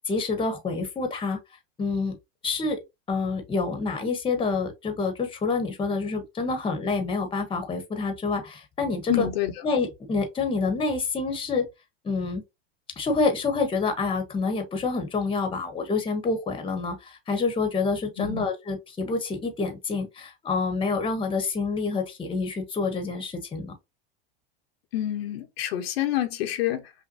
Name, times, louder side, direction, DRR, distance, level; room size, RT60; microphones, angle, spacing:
voice 1, 0.1-1.4 1.8-2.2 2.4-2.8 3.1-9.3 9.6-11.7 12.0-12.4 13.0-23.7, left 4 dB, 15° left, 1.1 m, -27 dB
voice 2, 9.1-9.5 18.2-18.4 24.9-26.9, left 13 dB, 75° left, 1.0 m, -27 dB
5.8 x 2.2 x 2.7 m
supercardioid pair, 125°, 30 cm